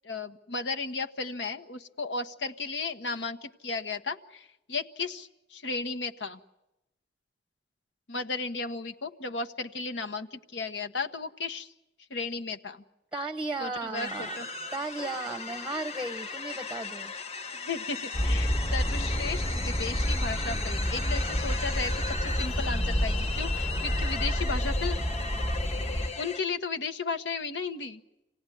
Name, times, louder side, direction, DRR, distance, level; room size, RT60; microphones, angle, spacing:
voice 1, 0.0-6.4 8.1-11.7 12.1-12.8 13.6-14.5 17.5-25.0 26.2-28.0, left 4 dB, 85° left, 5 dB, 1.2 m, -35 dB
voice 2, 13.1-14.3 14.7-17.1, right 2 dB, 5° right, 12 dB, 0.8 m, -35 dB
sound 1, 13.9-26.4, left 4 dB, 35° left, 1.0 m, -37 dB
sound 2, 18.1-26.1, equal, 20° left, 1.3 m, -29 dB
27.0 x 17.5 x 10.0 m, 0.94 s
head